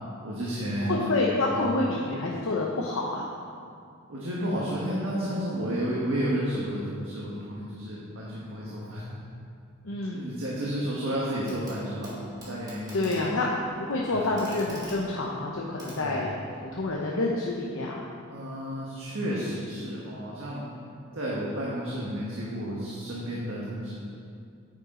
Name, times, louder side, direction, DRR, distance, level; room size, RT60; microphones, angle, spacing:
voice 1, 0.2-1.1 1.5-1.7 4.1-9.0 10.0-13.4 14.1-14.2 16.0-16.2 18.3-20.7 21.1-24.0, equal, 70° right, -6 dB, 1.6 m, -32 dB
voice 2, 0.8-3.3 9.8-10.3 12.9-13.5 13.8-18.0, left 2 dB, 70° left, -3 dB, 0.9 m, -28 dB
Clock, 11.4-11.8 12.0-16.7 18.0-18.1, right 1 dB, 20° right, 2.3 m, -46 dB
9.6 x 9.0 x 3.9 m, 2.3 s
head